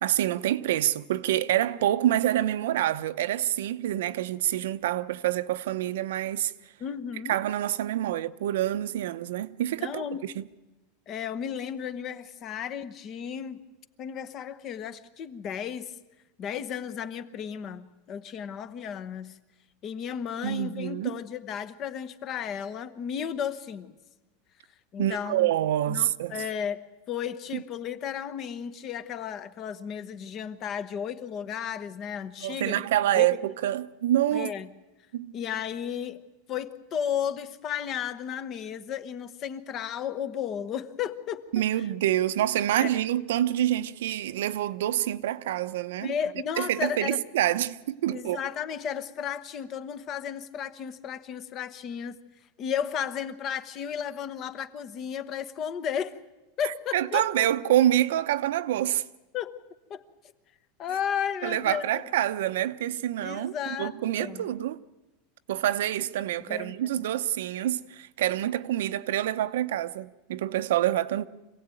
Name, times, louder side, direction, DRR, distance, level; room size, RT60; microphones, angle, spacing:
voice 1, 0.0-6.5 7.3-10.4 20.4-21.2 25.0-26.4 27.5-27.6 32.4-34.5 35.1-35.4 41.5-46.1 46.6-48.4 56.6-59.0 61.4-64.8 65.5-71.2, right 12 dB, 75° right, 0.9 m, -27 dB
voice 2, 6.8-7.4 9.8-10.2 11.1-13.6 14.0-15.9 16.4-19.4 19.8-23.9 24.9-25.5 25.9-26.8 27.1-32.9 33.1-33.5 34.3-34.7 35.3-36.2 36.5-41.5 41.7-41.9 42.8-42.9 46.0-47.2 48.1-52.2 52.6-56.2 56.6-57.5 59.3-59.6 59.9-60.0 60.8-62.0 63.2-64.5 66.5-67.0, left 8 dB, 25° left, 1.0 m, -34 dB
26.5 x 17.0 x 9.1 m
supercardioid pair, 180°, 0 cm